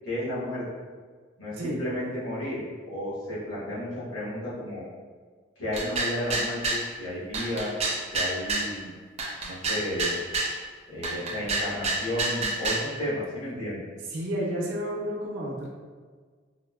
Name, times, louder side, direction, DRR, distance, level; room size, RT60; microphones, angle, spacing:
voice 1, 0.0-0.6 1.4-4.9 5.6-7.7 8.1-8.9 9.4-10.2 10.9-13.8, left 1 dB, 75° left, -8 dB, 1.2 m, -32 dB
sound 1, 5.7-6.9 7.3-8.7 9.2-10.6 11.0-12.9, right 2 dB, 35° right, 0.4 m, -28 dB
voice 2, 14.1-15.7, equal, 85° right, -3 dB, 0.5 m, -31 dB
4.3 x 2.0 x 2.2 m, 1.5 s
head